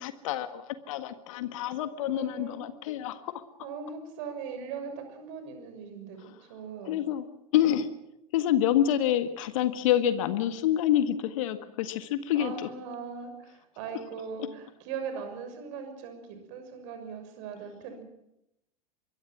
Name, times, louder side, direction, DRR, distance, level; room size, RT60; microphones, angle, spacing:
voice 1, 0.0-3.3 6.8-7.2 7.5-7.9 8.3-12.5, left 11 dB, 60° left, 11 dB, 1.7 m, -27 dB
voice 2, 2.0-2.6 3.6-7.0 12.3-18.0, right 6 dB, 55° right, 7 dB, 6.5 m, -40 dB
24.5 x 22.5 x 6.1 m, 0.84 s
figure-of-eight pair, 80°, 19 cm